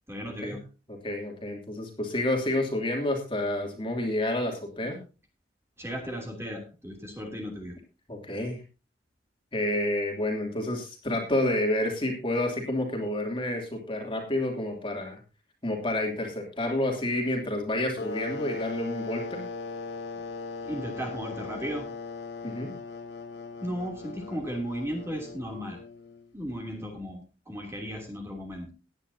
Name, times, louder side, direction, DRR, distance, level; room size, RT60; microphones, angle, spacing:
voice 1, 0.1-0.6 5.8-7.8 20.6-21.9 23.6-25.8 26.3-28.7, equal, 15° right, 1 dB, 2.9 m, -35 dB
voice 2, 1.0-5.0 8.1-8.6 9.5-15.2 15.6-19.4 22.4-22.7, left 1 dB, 30° left, 1 dB, 2.8 m, -29 dB
sound 1, 18.0-26.4, left 3 dB, 65° left, 1.2 m, -39 dB
18.0 x 9.8 x 2.7 m, 0.32 s
head